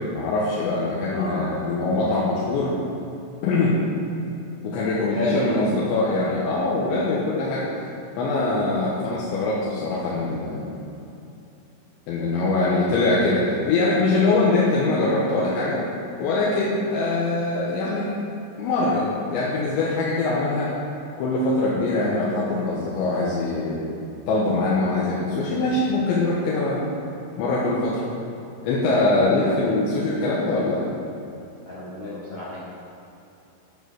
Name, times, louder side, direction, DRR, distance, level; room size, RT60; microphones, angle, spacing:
voice 1, 0.1-2.7 3.4-3.8 4.6-7.7 8.2-10.7 12.1-15.9 16.2-18.1 18.6-20.7 21.2-23.9 24.3-26.8 27.4-28.0 28.6-30.8, left 2 dB, 75° left, -6 dB, 3.2 m, -23 dB
voice 2, 1.1-1.5 2.3-2.5 4.9-5.4 29.4-29.6 31.7-32.6, left 2 dB, 50° left, -10 dB, 2.3 m, -32 dB
9.8 x 7.3 x 6.4 m, 2.8 s
omnidirectional pair, 5.8 m